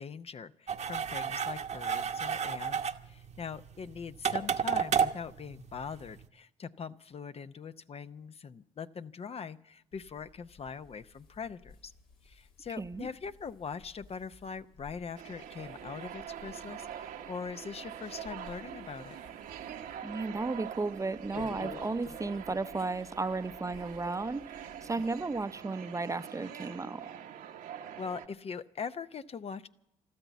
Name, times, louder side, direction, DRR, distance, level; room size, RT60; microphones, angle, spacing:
voice 1, 0.0-11.9 12.2-19.2 28.0-29.7, left 6 dB, 45° left, 12 dB, 0.6 m, -42 dB
sound 1, 0.7-6.3, right 7 dB, 50° right, 0.9 m, -32 dB
sound 2, 9.9-25.4, left 4 dB, 75° left, 1.9 m, -54 dB
voice 2, 12.8-13.1 20.0-24.4 24.8-27.1, right 3 dB, 20° right, 13 dB, 0.6 m, -34 dB
sound 3, 15.2-28.3, right 9 dB, 75° right, 1.1 m, -45 dB
13.0 x 13.0 x 8.2 m, 0.80 s
supercardioid pair, 65°, 15 cm